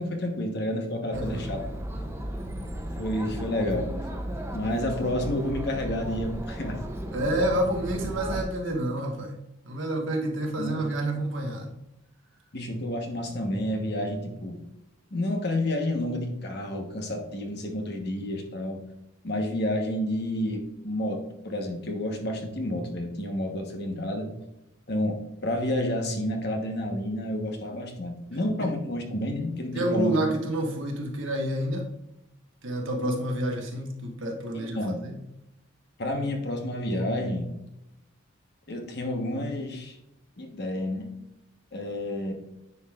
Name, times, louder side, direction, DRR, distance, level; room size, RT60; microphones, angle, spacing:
voice 1, 0.0-1.6 3.0-3.9 4.5-6.8 10.6-10.8 12.5-14.6 15.1-18.8 19.2-24.3 24.9-30.2 34.5-35.0 36.0-37.5 38.7-40.0 40.4-41.1 41.7-42.3, left 1 dB, 50° left, 3 dB, 1.1 m, -30 dB
Chatter, 1.1-8.4, right 1 dB, 10° right, 0.6 m, -35 dB
voice 2, 1.1-1.5 7.1-9.3 9.6-11.8 28.6-28.7 29.7-31.9 32.6-35.1, right 1 dB, 70° right, 1 dB, 1.3 m, -29 dB
9.6 x 4.9 x 2.4 m, 0.88 s
head